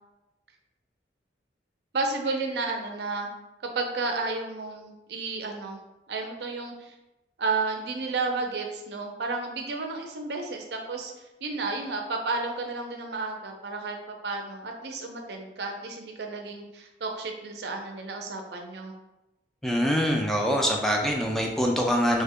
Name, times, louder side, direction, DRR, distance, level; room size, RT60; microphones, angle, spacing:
voice 1, 1.9-3.3 3.7-5.8 6.1-6.9 7.4-11.1 11.4-18.9, right 3 dB, 70° right, 3 dB, 0.5 m, -32 dB
voice 2, 19.6-22.2, equal, ahead, 0 dB, 0.3 m, -24 dB
3.2 x 2.1 x 3.6 m, 0.97 s
head